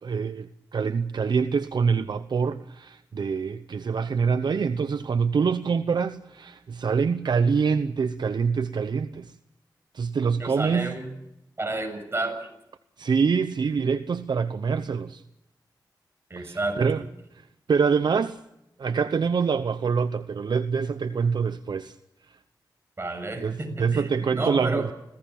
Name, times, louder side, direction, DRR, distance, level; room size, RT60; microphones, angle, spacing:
voice 1, 0.0-9.4 9.9-10.9 13.0-15.2 16.4-17.0 17.3-18.4 18.8-22.0 22.3-22.4 23.4-24.9, right 5 dB, 65° right, 11 dB, 0.8 m, -25 dB
voice 2, 10.4-11.1 11.6-12.5 16.3-17.1 23.0-24.9, right 2 dB, 30° right, 6 dB, 7.0 m, -31 dB
26.5 x 17.5 x 7.2 m, 0.86 s
cardioid pair, 70°, 8 cm